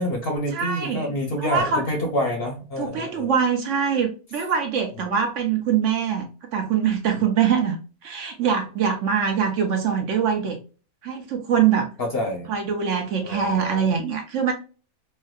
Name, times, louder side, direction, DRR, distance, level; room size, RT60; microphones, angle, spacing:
voice 1, 0.0-3.3 5.0-5.1 12.0-12.5 13.2-13.9, left 1 dB, 50° left, 2 dB, 0.8 m, -27 dB
voice 2, 0.5-1.1 1.4-1.9 2.8-7.8 8.0-10.6 11.0-11.9 12.5-14.5, right 7 dB, 65° right, 5 dB, 0.9 m, -23 dB
4.4 x 2.2 x 2.2 m, 0.35 s
omnidirectional pair, 1.5 m